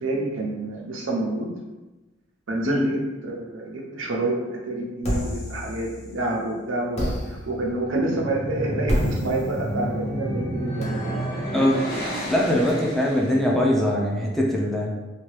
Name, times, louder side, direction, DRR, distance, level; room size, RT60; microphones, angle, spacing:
voice 1, 0.0-1.5 2.5-4.4 4.6-11.1 12.7-12.9, right 2 dB, 85° right, -1 dB, 0.6 m, -28 dB
voice 2, 2.7-3.0 11.5-11.8 12.3-14.9, left 1 dB, ahead, -3 dB, 0.3 m, -22 dB
sound 1, 5.0-6.4 6.9-12.7, equal, 35° left, 0.6 m, -32 dB
sound 2, 8.1-13.4, equal, 50° left, 1.1 m, -30 dB
2.8 x 2.3 x 3.1 m, 1.1 s
head